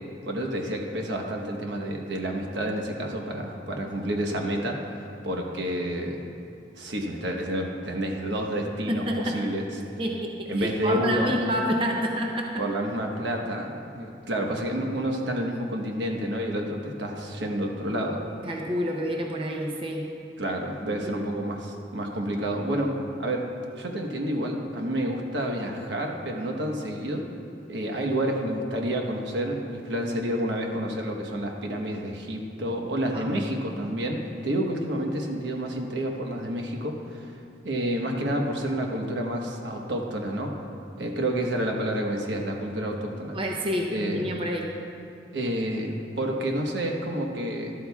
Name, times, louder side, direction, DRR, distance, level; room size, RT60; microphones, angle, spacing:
voice 1, 0.2-6.2 6.8-9.6 10.5-11.3 12.6-18.2 20.4-23.5 23.8-27.3 27.7-37.3 37.6-40.5 41.0-43.4 43.9-44.3 45.3-47.7, right 1 dB, 75° right, 1 dB, 1.1 m, -29 dB
voice 2, 8.9-9.4 10.0-12.6 18.4-20.1 21.1-21.2 33.1-33.3 43.3-44.7, equal, 30° right, 0 dB, 0.7 m, -28 dB
12.5 x 12.5 x 2.3 m, 2.5 s
head